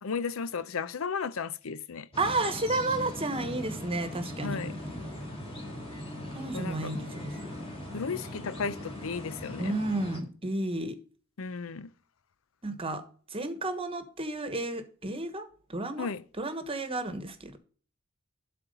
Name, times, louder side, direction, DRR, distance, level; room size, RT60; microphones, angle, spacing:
voice 1, 0.0-2.1 4.4-4.7 6.5-6.9 7.9-9.7 11.4-11.9 16.0-16.2, left 5 dB, 75° left, 0.6 m, -34 dB
sound 1, 2.1-10.2, left 1 dB, 30° left, 3.4 m, -40 dB
voice 2, 2.2-4.6 6.3-7.5 9.6-10.9 12.6-13.0 13.3-16.1 16.4-17.6, right 2 dB, 25° right, 1.2 m, -32 dB
12.0 x 4.3 x 5.3 m
head